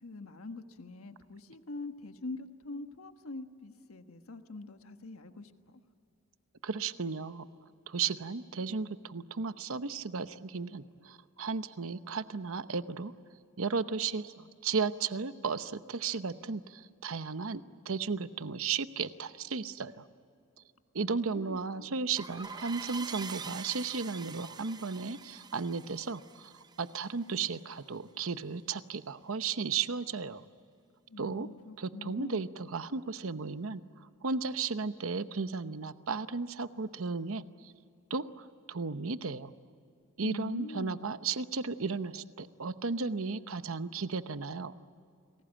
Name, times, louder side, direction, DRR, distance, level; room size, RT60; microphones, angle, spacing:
voice 1, 0.0-5.8 21.0-22.0 31.1-32.4 40.2-41.0, left 2 dB, 85° left, 7 dB, 1.4 m, -44 dB
voice 2, 6.6-7.5 7.9-13.1 13.6-20.1 20.9-30.4 31.2-31.5 31.8-37.7 38.1-39.5 40.2-44.8, right 5 dB, 70° right, 12 dB, 0.9 m, -35 dB
sound 1, 22.2-27.5, right 5 dB, 20° right, 0.7 m, -45 dB
30.0 x 20.5 x 8.9 m, 2.5 s
head